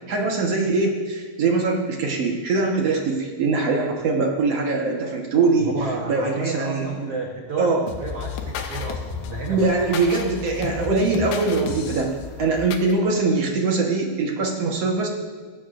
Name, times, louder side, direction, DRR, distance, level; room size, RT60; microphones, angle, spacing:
voice 1, 0.1-5.7 6.1-7.1 7.6-7.8 9.5-15.1, right 3 dB, 65° right, 0 dB, 1.6 m, -22 dB
voice 2, 5.6-9.9, right 3 dB, 90° right, -1 dB, 1.3 m, -31 dB
sound 1, 7.9-13.0, left 6 dB, 75° left, 2.8 m, -33 dB
18.5 x 16.0 x 2.6 m, 1.5 s
omnidirectional pair, 4.7 m